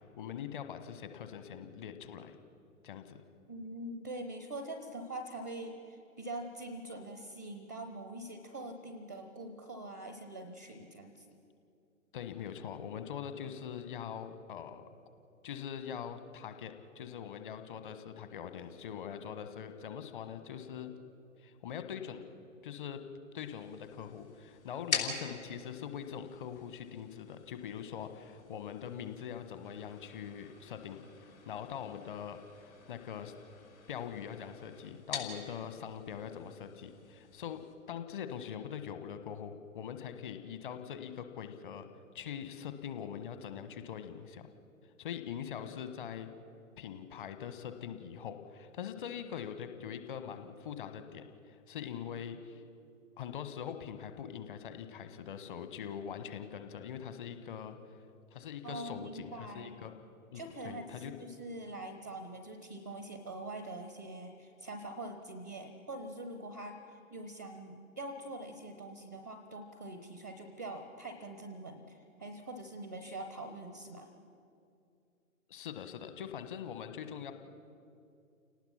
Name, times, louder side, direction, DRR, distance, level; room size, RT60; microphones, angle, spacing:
voice 1, 0.0-2.4 2.8-3.2 12.1-14.8 15.4-20.9 21.4-22.2 22.6-23.0 23.3-31.0 31.4-32.4 32.9-33.3 33.9-37.6 37.9-41.9 42.1-44.5 45.0-46.3 46.8-52.6 53.2-57.8 58.3-59.9 60.3-61.1 75.5-77.3, left 8 dB, 35° left, 9 dB, 1.4 m, -43 dB
voice 2, 3.5-11.3 58.6-59.8 60.3-74.1, right 1 dB, 15° right, 8 dB, 0.4 m, -44 dB
sound 1, 23.4-37.7, left 4 dB, 70° left, 4.2 m, -45 dB
29.0 x 18.5 x 5.8 m, 2.5 s
figure-of-eight pair, 125°, 44 cm